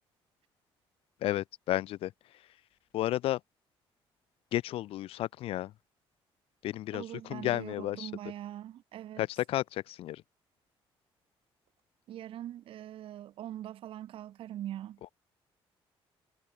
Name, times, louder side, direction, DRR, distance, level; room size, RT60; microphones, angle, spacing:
voice 1, 1.2-2.1 2.9-3.4 4.5-5.7 6.6-8.1 9.2-10.2, left 14 dB, 75° left, 0.4 m, -32 dB
voice 2, 6.9-9.2 12.1-15.1, right 12 dB, 65° right, 0.8 m, -42 dB
cardioid pair, 115°, 10 cm